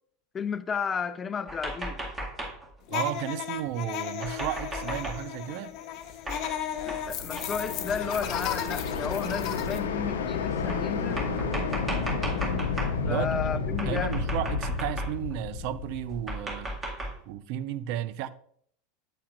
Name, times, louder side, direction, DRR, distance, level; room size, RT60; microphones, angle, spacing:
voice 1, 0.3-2.0 6.9-11.3 13.1-14.2, left 6 dB, 25° left, 0.6 m, -33 dB
sound 1, 1.5-2.7 4.2-5.2 6.3-6.6 6.9-7.0 7.4-7.5 8.3-8.4 9.5-9.6 10.7-13.0 13.8-15.3 16.1-17.2, right 1 dB, 20° right, 2.0 m, -35 dB
sound 2, 2.9-9.8, left 10 dB, 45° left, 1.0 m, -35 dB
voice 2, 2.9-5.7 13.0-16.7 17.3-18.3, right 11 dB, 55° right, 0.5 m, -33 dB
sound 3, 6.7-16.7, left 5 dB, 70° left, 0.8 m, -31 dB
8.4 x 8.2 x 2.5 m
figure-of-eight pair, 85°, 0 cm